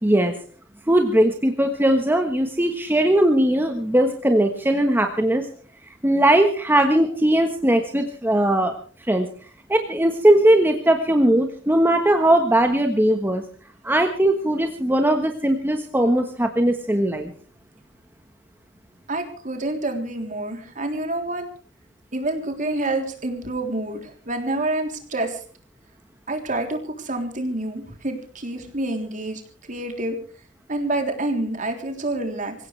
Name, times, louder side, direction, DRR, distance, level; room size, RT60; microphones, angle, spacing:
voice 1, 0.0-0.3 0.9-5.5 6.0-8.8 9.1-9.3 9.7-13.4 13.8-17.3, right 1 dB, 10° right, 5 dB, 1.3 m, -19 dB
voice 2, 19.1-21.5 22.1-25.4 26.3-29.4 29.7-30.2 30.7-32.5, right 2 dB, 45° right, 4 dB, 3.4 m, -27 dB
25.5 x 16.5 x 3.4 m, 0.41 s
head